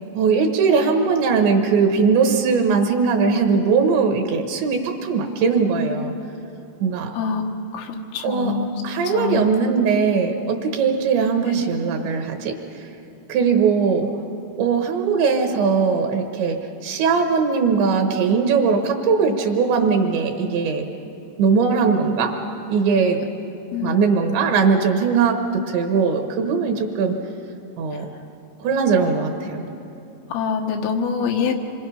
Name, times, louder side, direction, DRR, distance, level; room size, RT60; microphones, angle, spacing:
voice 1, 0.1-6.1 6.8-7.1 8.2-12.6 13.3-14.1 14.6-20.9 21.4-22.4 22.7-23.2 23.8-27.2 27.8-28.1 28.6-29.7, right 5 dB, 75° right, 4 dB, 3.3 m, -20 dB
voice 2, 7.7-8.7 9.1-9.4 11.5-11.6 23.7-24.0 30.3-31.6, left 6 dB, 85° left, 2 dB, 4.0 m, -25 dB
27.0 x 24.5 x 5.7 m, 2.7 s
omnidirectional pair, 5.5 m